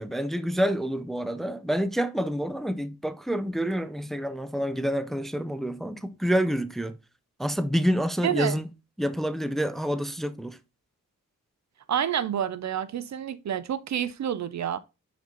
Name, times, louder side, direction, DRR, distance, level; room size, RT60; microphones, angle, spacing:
voice 1, 0.0-7.0 7.4-8.7 9.0-10.6, equal, ahead, 0.5 m, -28 dB
voice 2, 8.2-8.6 11.9-14.8, right 9 dB, 55° right, 0.5 m, -28 dB
5.3 x 5.0 x 3.9 m
cardioid pair, 70°, 33 cm